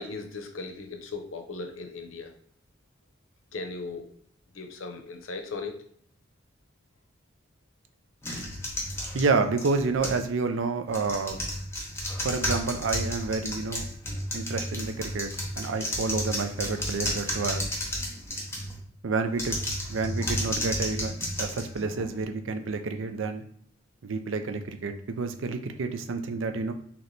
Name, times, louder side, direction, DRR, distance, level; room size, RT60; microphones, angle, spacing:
voice 1, 0.0-2.3 3.5-4.1 4.5-5.8, left 3 dB, 80° left, 6 dB, 0.7 m, -37 dB
sound 1, 8.2-10.3 10.9-18.8 19.3-22.2, left 1 dB, 15° left, 0.8 m, -32 dB
voice 2, 9.1-11.4 12.2-13.9 14.3-15.3 15.6-17.7 19.0-19.6 19.9-21.1 21.4-23.4 24.0-26.7, right 4 dB, 70° right, 7 dB, 0.5 m, -29 dB
3.2 x 3.0 x 3.9 m, 0.62 s
head